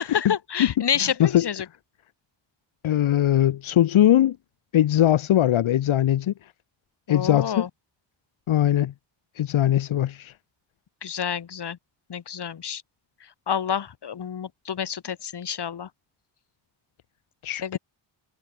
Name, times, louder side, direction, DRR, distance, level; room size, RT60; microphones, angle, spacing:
voice 1, 0.0-1.7 7.1-7.7 11.0-11.8 12.1-12.8 13.5-15.9 17.6-17.8, left 8 dB, 55° left, 5.5 m, -28 dB
voice 2, 2.8-4.4 4.7-6.3 7.1-7.6 8.5-8.9 9.4-10.3 17.4-17.8, left 12 dB, 85° left, 2.8 m, -20 dB
cardioid pair, 110°, 47 cm